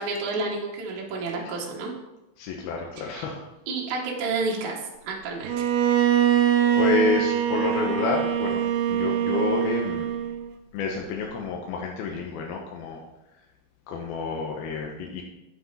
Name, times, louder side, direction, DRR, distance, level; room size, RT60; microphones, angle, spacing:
voice 1, 0.0-1.9 3.0-3.3 3.7-5.5, right 3 dB, 60° right, -2 dB, 2.2 m, -30 dB
voice 2, 2.4-3.4 6.7-8.6 8.9-10.1 10.7-13.0 13.9-15.2, left 4 dB, 75° left, 0 dB, 2.6 m, -28 dB
Bowed string instrument, 5.4-10.5, right 10 dB, 80° right, 2.4 m, -23 dB
8.7 x 7.9 x 4.1 m, 0.96 s
omnidirectional pair, 4.8 m